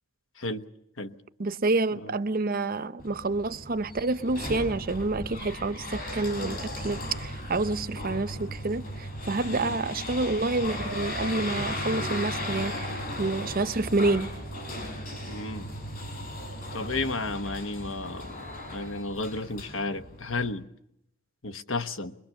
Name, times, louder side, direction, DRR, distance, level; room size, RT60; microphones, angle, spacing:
voice 1, 1.4-14.3, right 3 dB, 45° right, 0.7 m, -28 dB
sound 1, 3.0-20.5, left 1 dB, 45° left, 5.9 m, -36 dB
voice 2, 15.3-15.7 16.7-18.4 18.7-20.7 21.4-22.2, left 3 dB, 75° left, 1.3 m, -33 dB
22.5 x 22.5 x 6.6 m
head